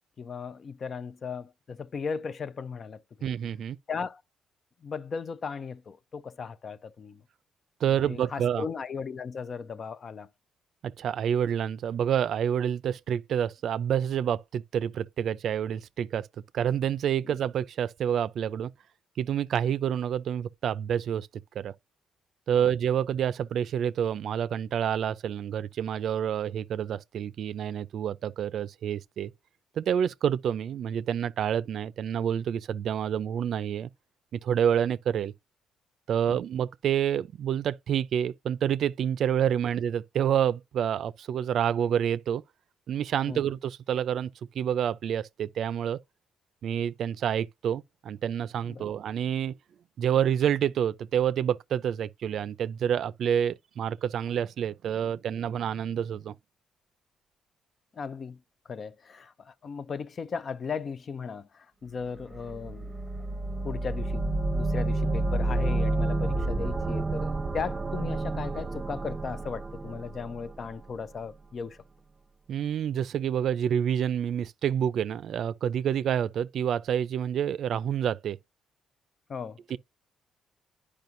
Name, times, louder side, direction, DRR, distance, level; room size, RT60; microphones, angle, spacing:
voice 1, 0.2-3.3 3.9-4.2 4.8-7.2 7.9-10.3 17.2-17.4 22.5-22.7 36.3-36.4 43.3-43.4 48.7-48.9 57.9-62.9 63.6-71.8 79.3-79.6, left 5 dB, 45° left, 0.5 m, -37 dB
voice 2, 3.2-3.8 7.8-8.6 10.8-16.3 16.5-18.7 19.2-21.3 21.5-21.7 22.5-29.3 29.8-33.9 34.3-35.3 36.1-42.4 42.9-44.3 44.5-46.0 46.6-49.5 50.0-56.3 72.5-78.4 79.7-79.8, right 9 dB, 65° right, 0.4 m, -28 dB
sound 1, 62.1-71.0, right 2 dB, 30° right, 0.7 m, -30 dB
10.5 x 4.9 x 2.6 m
cardioid pair, 90°, 0 cm